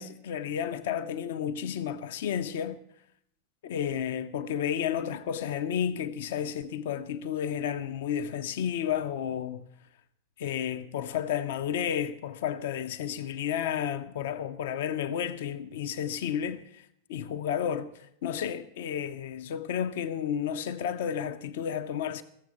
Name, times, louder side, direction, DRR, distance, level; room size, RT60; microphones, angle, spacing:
voice 1, 0.0-2.8 3.6-9.6 10.4-17.9 18.2-22.2, left 9 dB, 55° left, 0.6 m, -32 dB
15.0 x 7.5 x 8.4 m
figure-of-eight pair, 90°, 0 cm